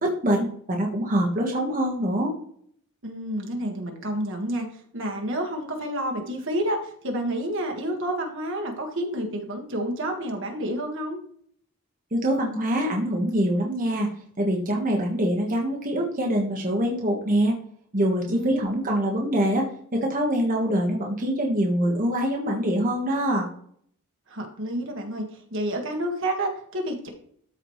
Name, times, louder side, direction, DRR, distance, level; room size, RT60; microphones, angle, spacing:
voice 1, 0.0-2.3 12.1-14.1 14.4-17.5 17.9-23.5, right 1 dB, 40° right, -1 dB, 1.4 m, -24 dB
voice 2, 3.0-11.2 18.3-18.9 19.2-19.3 24.3-27.1, right 1 dB, 60° right, 2 dB, 1.7 m, -29 dB
13.0 x 4.9 x 3.2 m, 0.62 s
head